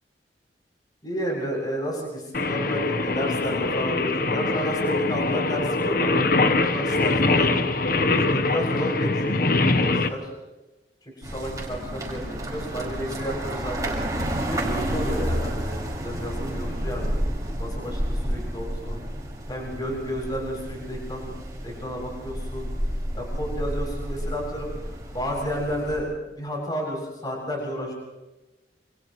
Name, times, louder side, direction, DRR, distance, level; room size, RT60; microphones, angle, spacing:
voice 1, 1.0-7.6 7.9-10.3 11.2-14.0 14.5-17.1 17.6-19.0 19.5-21.3 21.6-22.7 23.1-26.1 26.4-27.9, equal, 25° left, -1 dB, 7.6 m, -32 dB
Singing, 2.3-10.1, left 3 dB, 55° left, 1.2 m, -23 dB
sound 1, 11.2-26.0, equal, 20° right, 5.7 m, -30 dB
29.5 x 28.0 x 3.2 m, 1.1 s
head